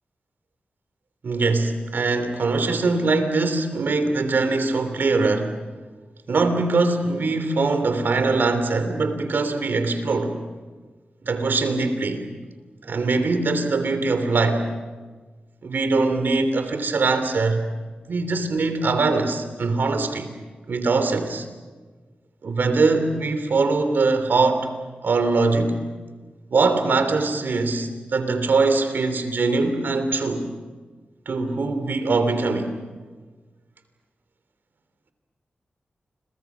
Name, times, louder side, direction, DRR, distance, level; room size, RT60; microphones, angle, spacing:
voice 1, 1.2-5.5 6.3-10.4 11.2-12.3 12.8-14.7 15.6-17.6 18.1-20.3 20.7-21.4 22.4-24.7 25.0-25.8 26.5-30.5 31.2-32.7, right 3 dB, 80° right, 9 dB, 3.1 m, -22 dB
29.5 x 24.0 x 6.2 m, 1.4 s
cardioid pair, 55°, 3 cm